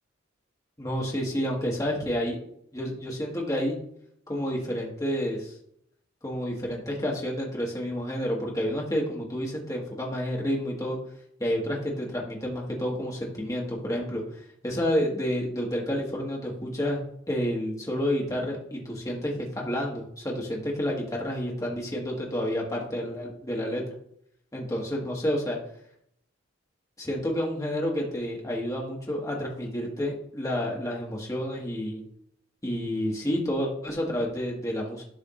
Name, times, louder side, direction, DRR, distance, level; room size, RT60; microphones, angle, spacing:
voice 1, 0.8-2.4 2.7-3.8 4.3-5.5 6.2-11.0 11.4-14.2 14.6-23.8 24.5-25.6 27.0-32.0 32.6-35.0, equal, 15° left, -2 dB, 1.7 m, -29 dB
12.5 x 5.1 x 2.5 m, 0.70 s
head